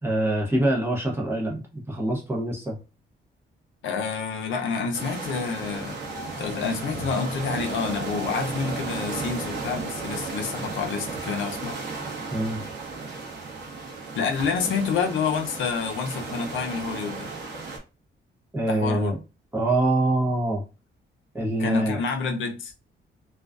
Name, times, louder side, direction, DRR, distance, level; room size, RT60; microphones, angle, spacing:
voice 1, 0.0-2.8 12.3-12.6 18.5-19.2 19.5-20.6 21.3-22.0, right 1 dB, 10° right, 0.7 m, -24 dB
voice 2, 3.8-6.0 6.4-11.8 14.1-17.3 18.6-19.1 21.6-22.7, left 5 dB, 80° left, 0.5 m, -28 dB
sound 1, 4.9-17.8, right 4 dB, 60° right, 0.8 m, -34 dB
sound 2, 5.9-7.1, left 4 dB, 25° left, 0.6 m, -44 dB
2.4 x 2.2 x 2.3 m
cardioid pair, 130°, 20 cm